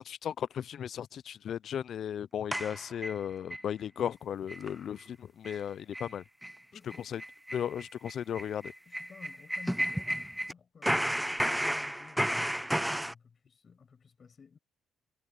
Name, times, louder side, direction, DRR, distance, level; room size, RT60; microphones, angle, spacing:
voice 1, 0.0-6.2 7.0-7.2 7.5-8.7, left 9 dB, 65° left, 0.4 m, -36 dB
sound 1, 2.5-3.6 4.0-4.1 4.5-4.7 5.0-5.1 5.4-5.6 5.9-6.1 6.4-6.6 6.9-10.5 10.8-13.1, equal, 5° right, 0.8 m, -32 dB
voice 2, 6.7-7.3 8.9-14.6, left 6 dB, 45° left, 7.6 m, -54 dB
cardioid pair, 90°, 0 cm